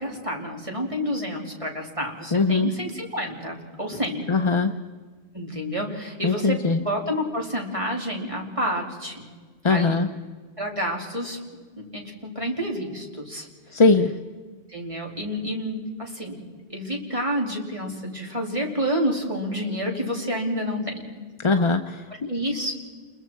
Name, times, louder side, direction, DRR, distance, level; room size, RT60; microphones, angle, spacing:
voice 1, 0.0-4.2 5.3-9.3 9.7-10.0 10.6-11.4 11.9-13.5 14.7-16.4 16.7-20.9 22.3-22.7, equal, 30° right, -1 dB, 3.1 m, -29 dB
voice 2, 2.3-2.7 4.3-4.7 6.2-6.8 9.6-10.1 13.7-14.1 21.4-22.3, left 3 dB, 35° left, 7 dB, 0.6 m, -20 dB
29.0 x 22.0 x 4.5 m, 1.5 s
omnidirectional pair, 1.1 m